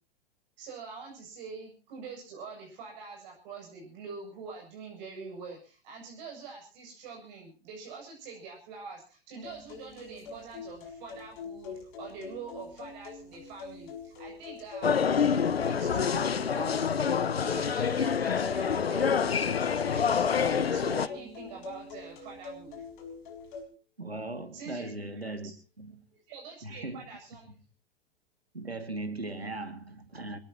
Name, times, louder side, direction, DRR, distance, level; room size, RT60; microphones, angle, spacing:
voice 1, 0.6-17.1 17.4-22.8 24.5-24.9 25.2-25.4 26.1-27.5, right 4 dB, 50° right, 7.9 m, -45 dB
sound 1, 9.4-23.6, left 4 dB, 55° left, 6.6 m, -45 dB
sound 2, 14.8-21.1, left 6 dB, 80° left, 1.0 m, -27 dB
Harp, 17.5-23.3 24.3-24.4, left 6 dB, 20° left, 5.0 m, -47 dB
voice 2, 24.0-25.5 25.8-26.0 26.6-27.1 28.5-30.4, right 2 dB, 90° right, 2.5 m, -38 dB
26.5 x 18.0 x 3.0 m
figure-of-eight pair, 100°, 30 cm